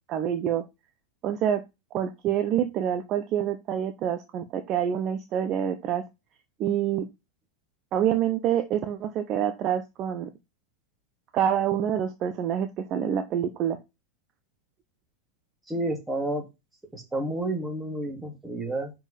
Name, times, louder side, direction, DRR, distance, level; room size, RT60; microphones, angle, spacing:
voice 1, 0.1-0.6 1.2-1.6 1.9-6.0 6.6-7.1 7.9-10.3 11.3-13.8, right 9 dB, 35° right, 8 dB, 0.7 m, -27 dB
voice 2, 15.7-16.4 16.9-18.9, right 1 dB, 10° right, 0 dB, 2.6 m, -30 dB
6.0 x 4.6 x 5.1 m, 0.24 s
figure-of-eight pair, 90°, 0 cm